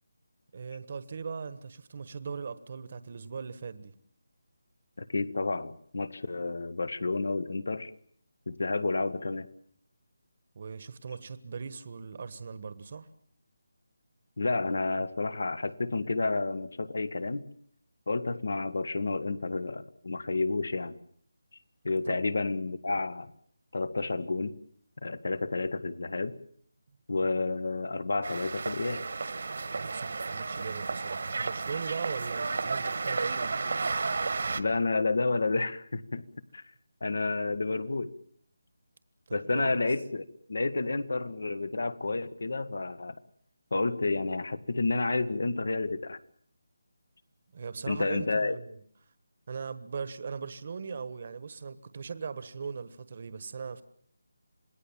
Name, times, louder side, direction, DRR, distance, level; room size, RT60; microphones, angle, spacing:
voice 1, 0.5-3.9 10.5-13.1 22.1-22.2 29.7-33.6 39.3-39.8 47.5-48.8 49.5-53.8, right 5 dB, 45° right, 13 dB, 1.3 m, -39 dB
voice 2, 5.0-7.9 8.5-9.5 14.4-17.4 18.1-21.0 21.8-23.3 23.7-24.6 25.0-26.3 27.1-29.0 34.5-36.2 36.5-36.6 37.0-38.1 39.3-43.2 43.7-46.2 47.9-48.6, left 3 dB, 70° left, 14 dB, 1.7 m, -30 dB
sound 1, 28.2-34.6, right 4 dB, 60° right, 1.6 m, -32 dB
27.5 x 19.5 x 7.4 m, 0.62 s
figure-of-eight pair, 165°, 0 cm